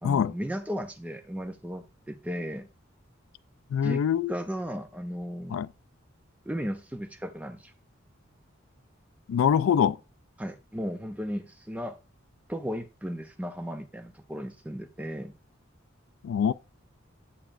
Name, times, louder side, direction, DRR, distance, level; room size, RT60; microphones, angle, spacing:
voice 1, 0.0-2.7 3.8-4.0 4.3-5.6 6.5-7.7 10.4-12.0 12.5-15.3, equal, 5° right, 0.4 m, -35 dB
voice 2, 3.7-4.3 5.5-5.7 9.3-10.0 16.2-16.5, left 8 dB, 75° left, 0.3 m, -24 dB
8.6 x 6.9 x 2.5 m
head